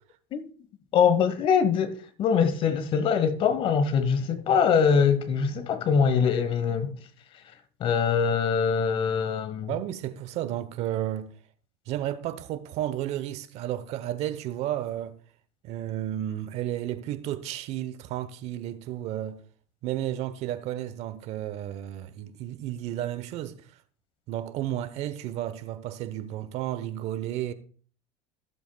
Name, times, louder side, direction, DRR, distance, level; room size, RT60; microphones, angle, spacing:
voice 1, 0.9-6.9 7.8-9.7, left 6 dB, 40° left, 1.1 m, -23 dB
voice 2, 9.7-11.3 11.9-15.2 15.6-19.4 19.8-23.6 24.3-27.5, right 12 dB, 55° right, 0.9 m, -32 dB
15.0 x 7.8 x 2.3 m
supercardioid pair, 120°, 14 cm